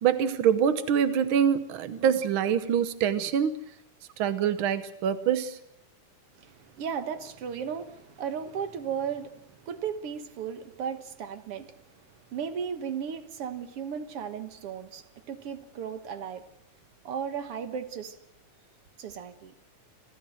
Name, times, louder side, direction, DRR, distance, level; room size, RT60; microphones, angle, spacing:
voice 1, 0.0-3.6 4.2-5.6, right 8 dB, 85° right, 1.1 m, -25 dB
voice 2, 6.4-11.7 12.3-16.4 17.0-18.2 19.0-19.5, right 7 dB, 55° right, 1.8 m, -35 dB
29.0 x 13.5 x 7.8 m
omnidirectional pair, 3.8 m